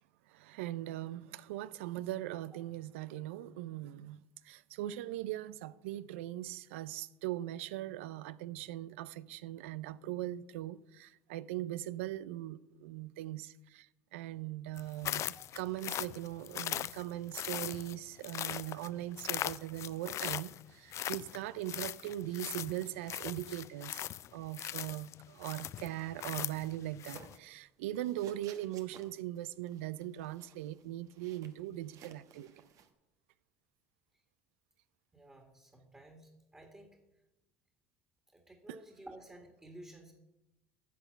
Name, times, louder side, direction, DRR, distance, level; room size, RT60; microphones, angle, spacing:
voice 1, 0.3-24.1 24.3-32.5 38.7-38.8, right 14 dB, 80° right, 0.5 m, -40 dB
sound 1, 14.8-27.4, left 12 dB, 45° left, 0.4 m, -40 dB
sound 2, 27.2-27.6 27.9-32.9, right 7 dB, 55° right, 1.2 m, -57 dB
voice 2, 35.1-37.0 38.3-40.1, right 1 dB, 15° right, 2.1 m, -53 dB
10.5 x 5.9 x 7.9 m
hypercardioid pair, 80°, 7 cm